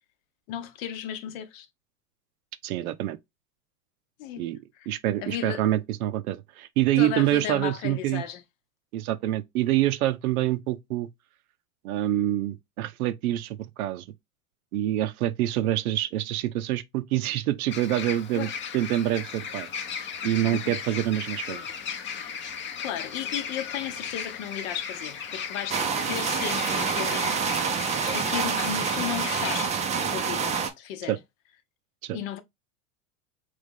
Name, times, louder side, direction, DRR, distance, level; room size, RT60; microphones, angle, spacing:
voice 1, 0.5-1.7 4.2-4.5 4.8-4.9 5.2-5.8 7.0-8.4 18.4-18.6 20.2-20.7 21.5-21.7 22.2-22.4 22.8-31.2 32.1-32.4, left 10 dB, 60° left, 0.8 m, -35 dB
voice 2, 2.6-3.2 4.4-4.6 4.9-8.2 8.9-11.1 11.8-14.0 14.7-19.7 20.2-21.6 31.1-31.2 32.0-32.2, right 13 dB, 75° right, 0.6 m, -26 dB
sound 1, 17.7-29.7, left 6 dB, 25° left, 0.7 m, -36 dB
sound 2, 25.7-30.7, right 6 dB, 15° right, 0.4 m, -27 dB
3.3 x 3.1 x 3.5 m
hypercardioid pair, 110°, 44 cm